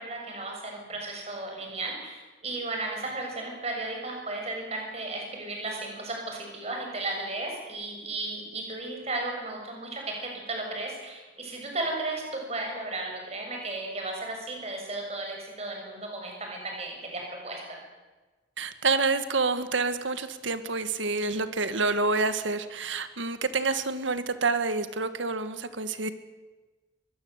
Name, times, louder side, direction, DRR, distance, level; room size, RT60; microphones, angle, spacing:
voice 1, 0.0-17.8, right 2 dB, 35° right, 1 dB, 6.8 m, -35 dB
voice 2, 18.6-26.1, right 3 dB, 80° right, 11 dB, 1.8 m, -28 dB
23.5 x 20.5 x 8.1 m, 1.2 s
head